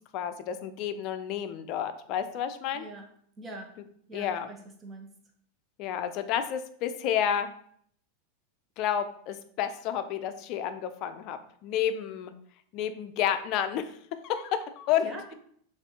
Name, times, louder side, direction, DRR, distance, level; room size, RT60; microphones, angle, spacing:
voice 1, 0.1-2.9 4.1-4.5 5.8-7.6 8.8-12.3 12.7-15.3, left 9 dB, 45° left, 10 dB, 0.4 m, -30 dB
voice 2, 2.7-3.1 3.4-3.8 4.1-5.1 15.0-15.3, right 2 dB, 20° right, 2 dB, 0.9 m, -43 dB
7.1 x 2.5 x 2.9 m, 0.62 s
supercardioid pair, 130°, 0 cm